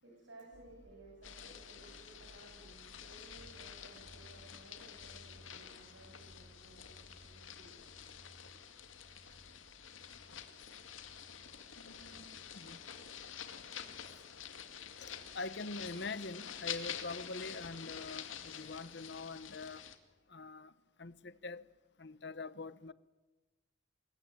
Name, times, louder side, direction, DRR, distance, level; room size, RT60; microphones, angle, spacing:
voice 1, 0.0-7.7 8.3-8.5, right 2 dB, 75° right, -1 dB, 7.6 m, -58 dB
sound 1, 0.5-18.1, equal, 50° right, 2.3 m, -63 dB
sound 2, 1.2-20.0, left 8 dB, 85° left, 2.4 m, -48 dB
voice 2, 11.8-12.8 15.0-19.8 20.3-20.7 21.0-21.7 22.0-22.9, left 3 dB, 60° left, 17 dB, 1.0 m, -44 dB
26.0 x 21.5 x 9.1 m, 1.2 s
head